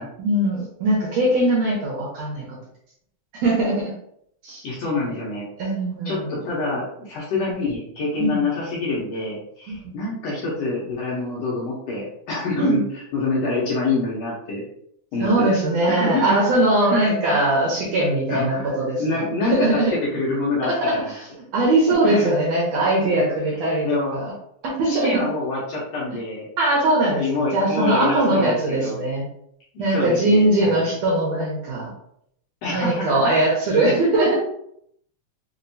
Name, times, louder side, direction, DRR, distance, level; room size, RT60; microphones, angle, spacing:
voice 1, 0.2-2.6 3.3-3.9 4.4-4.6 5.6-6.4 8.2-8.4 9.7-9.9 12.5-12.8 15.2-19.9 20.6-21.2 21.5-24.3 24.6-25.2 26.6-27.2 27.5-29.2 29.8-31.9 32.7-34.4, right 2 dB, 70° right, -3 dB, 1.8 m, -21 dB
voice 2, 4.6-5.5 6.0-12.8 13.1-14.6 15.1-15.6 15.9-16.4 16.8-17.4 17.9-18.0 18.3-18.7 19.0-19.7 20.1-21.1 22.0-22.3 23.1-23.6 23.8-24.1 24.8-26.5 27.2-29.0 29.7-30.8 32.6-33.4, left 3 dB, 70° left, -6 dB, 1.7 m, -26 dB
5.1 x 2.6 x 2.7 m, 0.71 s
omnidirectional pair, 3.7 m